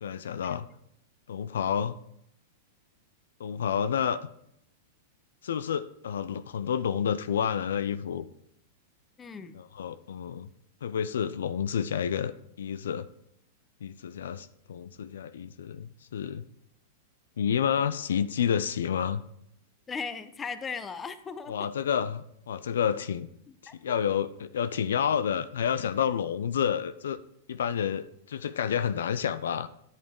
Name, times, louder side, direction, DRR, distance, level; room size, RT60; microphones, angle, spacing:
voice 1, 0.0-0.7 1.3-2.0 3.4-4.2 5.4-8.3 9.5-10.5 10.8-12.3 12.6-13.1 13.8-16.4 17.4-19.2 21.5-23.3 23.8-27.2 27.5-29.7, left 8 dB, 75° left, 13 dB, 0.4 m, -29 dB
voice 2, 9.2-9.5 19.9-21.7 23.5-24.0, left 5 dB, 20° left, 12 dB, 0.8 m, -38 dB
10.0 x 8.2 x 3.7 m, 0.74 s
hypercardioid pair, 110°, 0 cm